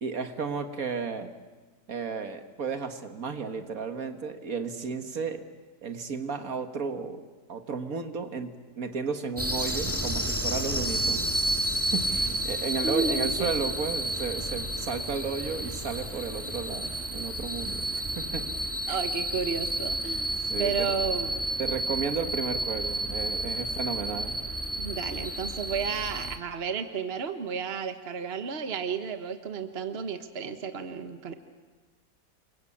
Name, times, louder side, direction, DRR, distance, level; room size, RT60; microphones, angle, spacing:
voice 1, 0.0-1.3 1.9-5.5 5.8-7.2 7.5-11.3 11.9-18.4 18.9-19.0 20.4-20.9 21.6-24.4, right 5 dB, 60° right, 7 dB, 1.9 m, -33 dB
sound 1, 9.4-26.4, right 1 dB, 10° right, 1.9 m, -31 dB
voice 2, 12.8-13.5 18.9-20.3 20.6-21.4 24.8-31.3, right 6 dB, 40° right, 8 dB, 1.5 m, -32 dB
29.0 x 23.0 x 8.6 m, 1.3 s
omnidirectional pair, 1.7 m